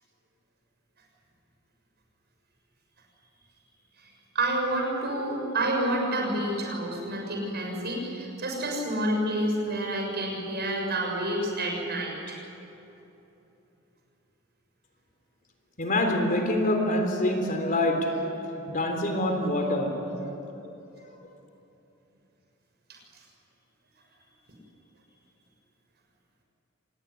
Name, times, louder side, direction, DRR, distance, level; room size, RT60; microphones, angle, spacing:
voice 1, 4.4-12.4, right 1 dB, 55° right, 0 dB, 6.9 m, -29 dB
voice 2, 15.8-18.2 18.7-19.9 20.6-20.8, left 1 dB, 40° left, 3 dB, 3.7 m, -25 dB
26.0 x 20.5 x 10.0 m, 3.0 s
head